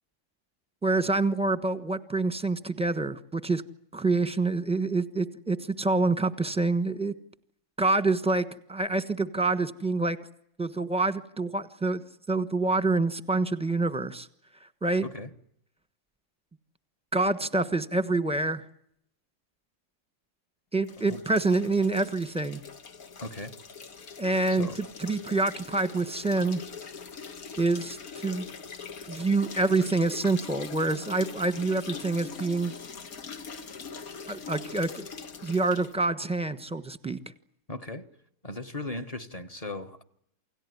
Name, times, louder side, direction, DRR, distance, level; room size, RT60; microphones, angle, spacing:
voice 1, 0.8-3.6 3.9-7.1 7.8-10.2 10.6-12.0 12.3-14.3 14.8-15.1 17.1-18.6 20.7-22.6 24.2-24.7 25.0-26.6 27.6-28.5 29.1-32.7 34.3-35.1 35.4-37.2, right 3 dB, 5° right, 1.1 m, -26 dB
sound 1, 20.8-36.0, left 5 dB, 65° left, 2.0 m, -42 dB
voice 2, 23.2-23.5 24.5-24.7 37.7-38.1 38.4-40.0, left 2 dB, 25° left, 1.3 m, -37 dB
28.5 x 18.5 x 9.6 m
omnidirectional pair, 1.6 m